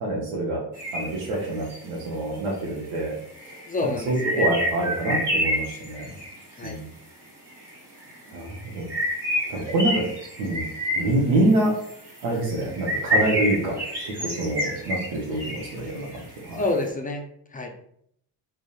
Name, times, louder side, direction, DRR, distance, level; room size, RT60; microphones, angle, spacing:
voice 1, 0.0-0.6 0.9-3.2 3.4-3.6 4.1-6.2 6.6-6.9 8.3-9.0 9.4-10.0 10.4-10.7 11.0-11.7 12.2-16.6, right 2 dB, 80° right, -3 dB, 0.6 m, -26 dB
sound 1, 0.8-1.8 2.7-2.8 3.1-6.7 7.5-7.7 8.0-16.7, equal, 55° right, 1.2 m, -29 dB
voice 2, 3.7-4.5 6.5-6.8 16.5-17.2 17.5-17.7, left 2 dB, 20° left, 2 dB, 0.3 m, -28 dB
2.7 x 2.0 x 2.2 m, 0.69 s
supercardioid pair, 50°, 47 cm